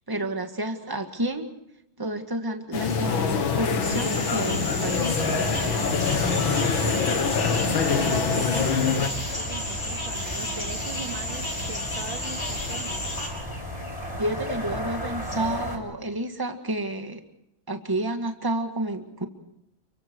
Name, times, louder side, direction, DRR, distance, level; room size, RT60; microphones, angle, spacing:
voice 1, 0.1-1.5 2.0-5.1 14.2-17.2 17.7-19.3, right 1 dB, 10° right, 5 dB, 1.9 m, -30 dB
sound 1, 2.7-9.1, left 5 dB, 80° left, 2.5 m, -24 dB
sound 2, 3.8-13.3, left 1 dB, 50° left, 6.4 m, -33 dB
sound 3, 5.1-15.8, equal, 15° left, 6.2 m, -35 dB
voice 2, 6.9-13.0, right 5 dB, 70° right, 3 dB, 3.4 m, -40 dB
29.5 x 24.0 x 4.7 m, 0.79 s
omnidirectional pair, 2.1 m